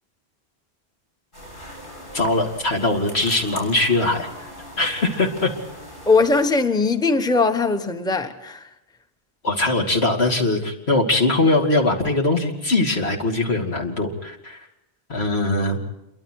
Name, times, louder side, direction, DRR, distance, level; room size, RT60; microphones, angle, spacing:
sound 1, 1.3-6.5, left 1 dB, 50° left, 7.1 m, -40 dB
voice 1, 2.1-4.3 4.8-5.5 9.4-14.6 15.1-15.8, left 2 dB, 75° left, 2.8 m, -21 dB
voice 2, 6.1-8.7, left 3 dB, 5° left, 1.0 m, -20 dB
28.0 x 23.5 x 4.7 m
omnidirectional pair, 1.1 m